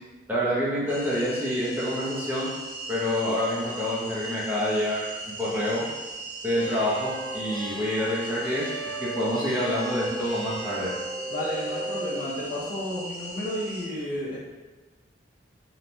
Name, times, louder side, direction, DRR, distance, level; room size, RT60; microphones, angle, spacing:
voice 1, 0.3-2.5 2.9-5.8 6.4-8.7 9.0-10.9, equal, 10° right, -8 dB, 0.5 m, -27 dB
sound 1, 0.9-13.8, right 2 dB, 85° right, 0.8 m, -39 dB
sound 2, 6.6-12.3, right 2 dB, 25° left, 0.9 m, -36 dB
voice 2, 11.3-14.4, left 1 dB, 45° left, -5 dB, 0.6 m, -32 dB
3.1 x 2.1 x 2.5 m, 1.2 s
head